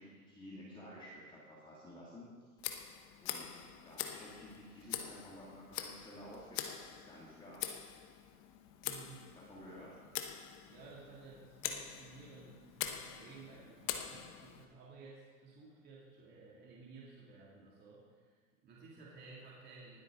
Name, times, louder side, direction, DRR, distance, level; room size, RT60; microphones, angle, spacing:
voice 1, 0.0-2.3 3.2-7.6 9.5-9.9, equal, 10° left, -6 dB, 2.2 m, -52 dB
Tick, 2.6-14.7, left 10 dB, 35° left, 0.9 m, -44 dB
voice 2, 8.8-9.3 10.4-10.5 10.7-20.0, right 4 dB, 20° right, -5 dB, 2.4 m, -55 dB
19.5 x 8.3 x 3.7 m, 1.6 s
hypercardioid pair, 145°, 45 cm